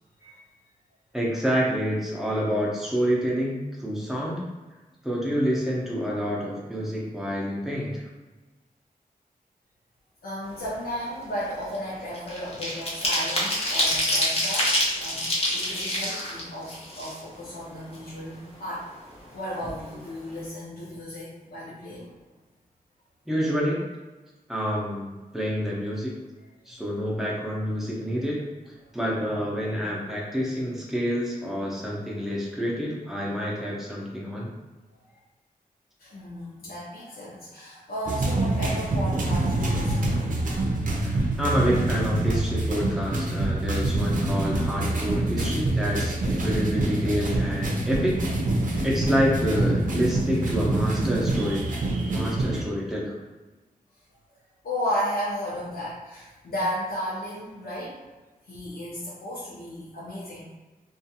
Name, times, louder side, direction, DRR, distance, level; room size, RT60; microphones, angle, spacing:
voice 1, 1.1-4.4 5.0-8.1 23.3-23.8 24.5-26.2 26.7-34.5 41.0-48.2 48.8-51.6 52.1-53.2, equal, ahead, -5 dB, 0.6 m, -28 dB
voice 2, 10.2-15.2 15.5-18.9 19.3-22.2 36.0-40.9 54.6-58.0 58.5-60.4, equal, 75° left, -9 dB, 0.7 m, -34 dB
sound 1, 10.6-10.8 11.1-17.6 17.9-18.0 18.3-19.3 19.6-19.8 20.1-20.4, left 1 dB, 40° left, 0.8 m, -27 dB
sound 2, 38.1-52.6, right 2 dB, 60° right, 0.6 m, -26 dB
2.5 x 2.3 x 2.7 m, 1.2 s
wide cardioid pair, 125°, 15 cm